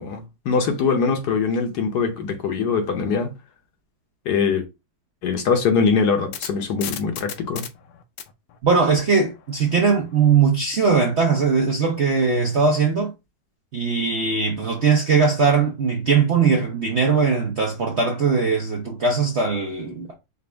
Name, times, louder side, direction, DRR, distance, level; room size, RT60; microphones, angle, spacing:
voice 1, 0.0-3.3 4.3-4.6 5.2-7.6, left 5 dB, 65° left, 1.2 m, -22 dB
sound 1, 5.9-10.2, left 10 dB, 80° left, 1.4 m, -37 dB
voice 2, 8.6-13.1 13.7-20.1, right 5 dB, 60° right, 0.7 m, -20 dB
5.1 x 2.4 x 3.3 m
omnidirectional pair, 2.0 m